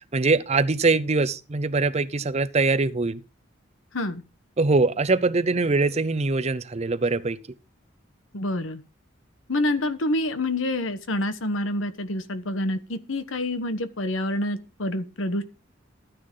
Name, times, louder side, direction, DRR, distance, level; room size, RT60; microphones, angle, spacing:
voice 1, 0.0-3.2 4.6-7.4, right 3 dB, 35° right, 0.6 m, -23 dB
voice 2, 8.3-8.8 9.5-15.4, left 1 dB, 75° left, 1.2 m, -27 dB
13.0 x 9.7 x 3.8 m
head